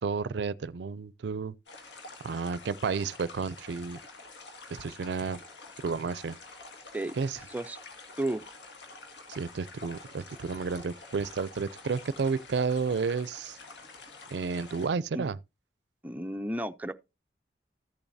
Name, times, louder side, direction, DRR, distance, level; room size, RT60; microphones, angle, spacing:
voice 1, 0.0-1.5 2.2-4.0 4.8-5.4 5.8-6.4 7.2-7.4 9.3-13.6 14.3-15.4, right 5 dB, 75° right, 0.4 m, -31 dB
sound 1, 1.7-14.9, left 3 dB, 85° left, 1.8 m, -48 dB
voice 2, 16.0-16.9, right 1 dB, 10° right, 0.4 m, -32 dB
14.0 x 7.1 x 2.6 m
head